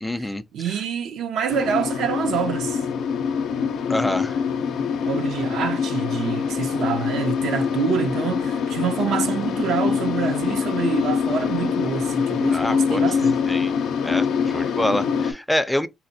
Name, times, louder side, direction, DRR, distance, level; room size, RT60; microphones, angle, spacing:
voice 1, 0.0-0.4 3.9-4.4 12.5-13.1 13.5-13.7 14.0-15.9, left 1 dB, 5° left, 0.4 m, -26 dB
voice 2, 0.5-2.8 5.0-13.4, right 7 dB, 80° right, 0.5 m, -26 dB
sound 1, 1.5-15.3, left 6 dB, 80° left, 0.5 m, -24 dB
4.1 x 2.1 x 2.7 m
cardioid pair, 90°, 0 cm